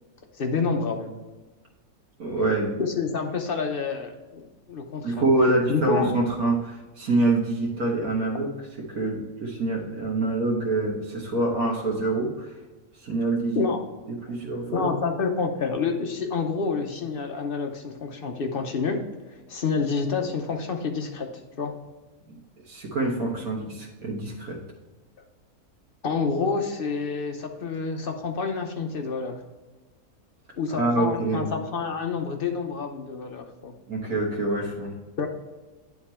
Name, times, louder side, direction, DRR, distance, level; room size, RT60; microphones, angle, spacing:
voice 1, 0.4-1.1 2.8-5.2 5.7-6.1 13.6-13.8 14.7-19.0 19.5-21.3 21.6-21.8 26.0-29.3 30.6-33.7 35.2-35.3, left 4 dB, 50° left, 5 dB, 0.8 m, -28 dB
voice 2, 2.2-2.8 5.0-8.5 8.9-12.6 12.9-13.6 14.3-14.9 22.3-22.4 22.6-24.6 30.7-31.5 33.9-35.0, right 2 dB, 75° right, -3 dB, 1.7 m, -26 dB
10.0 x 3.6 x 4.3 m, 1.2 s
omnidirectional pair, 1.6 m